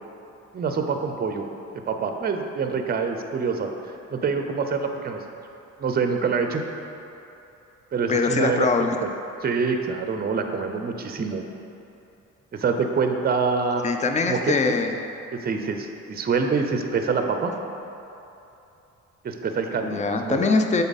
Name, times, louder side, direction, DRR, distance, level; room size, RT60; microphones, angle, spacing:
voice 1, 0.5-1.5 1.9-5.2 5.8-6.6 7.9-8.7 9.0-9.1 9.4-11.4 12.5-13.8 14.3-14.6 15.3-17.5 19.2-20.5, right 5 dB, 30° right, 5 dB, 0.5 m, -25 dB
voice 2, 8.1-9.0 13.8-14.9 19.8-20.8, left 4 dB, 25° left, 5 dB, 0.5 m, -22 dB
7.1 x 4.1 x 4.0 m, 2.9 s
cardioid pair, 90°, 30 cm